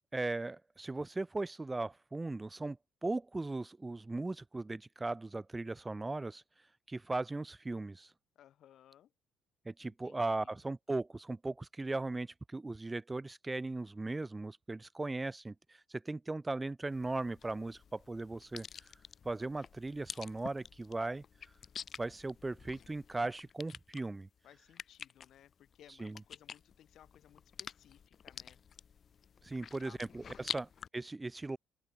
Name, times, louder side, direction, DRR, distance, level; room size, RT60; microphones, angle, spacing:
voice 1, 0.1-2.8 3.0-6.4 6.9-8.1 9.6-18.7 19.2-21.2 22.0-24.3 26.0-26.2 29.4-31.6, right 2 dB, 20° right, 2.7 m, -38 dB
voice 2, 8.3-9.1 9.8-10.5 24.4-28.6 29.4-30.0 30.4-30.6, left 11 dB, 65° left, 3.0 m, -61 dB
sound 1, 16.9-30.9, left 7 dB, 45° left, 1.2 m, -48 dB
open air
cardioid pair, 85°, 0 cm